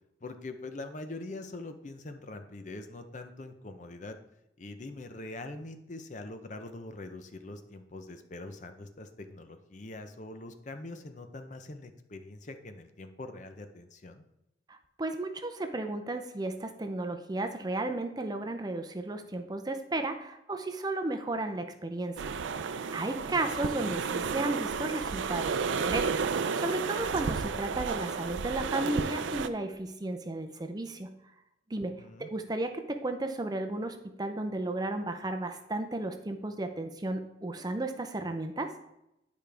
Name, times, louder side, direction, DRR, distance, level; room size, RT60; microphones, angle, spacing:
voice 1, 0.2-4.2 4.6-14.2 23.3-23.7 31.8-32.3, left 2 dB, 40° left, 8 dB, 0.6 m, -43 dB
voice 2, 14.7-22.3 22.7-31.1 31.7-31.9 32.2-38.7, right 2 dB, 20° right, 6 dB, 0.5 m, -34 dB
sound 1, 22.2-29.5, right 5 dB, 80° right, 0.4 m, -32 dB
10.5 x 5.0 x 3.4 m, 0.87 s
head